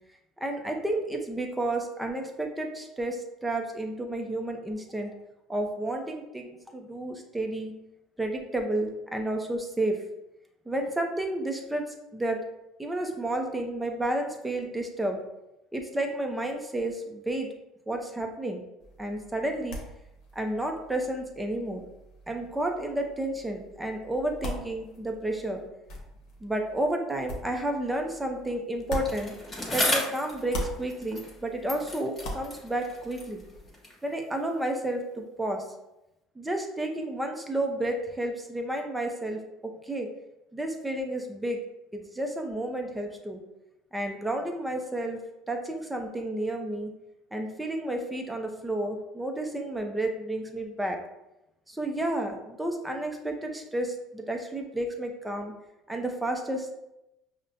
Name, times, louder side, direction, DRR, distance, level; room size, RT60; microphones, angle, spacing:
voice 1, 0.4-5.1 5.5-7.7 8.2-10.0 10.7-12.4 12.8-15.2 15.7-17.5 17.9-18.6 19.0-19.8 20.3-21.8 22.3-25.6 26.4-29.3 29.7-33.4 34.0-35.6 36.4-40.1 40.5-41.6 41.9-43.4 43.9-45.2 45.5-46.9 47.3-51.0 51.7-55.5 55.9-56.7, right 1 dB, 10° right, 3 dB, 0.6 m, -31 dB
sound 1, 18.8-30.0 30.3-33.7, equal, 70° left, 0.9 m, -42 dB
Bicycle, 29.0-31.4 31.7-34.1 34.8-34.9, left 1 dB, 20° left, 1.3 m, -34 dB
5.3 x 2.1 x 2.6 m, 0.91 s
supercardioid pair, 105°, 0 cm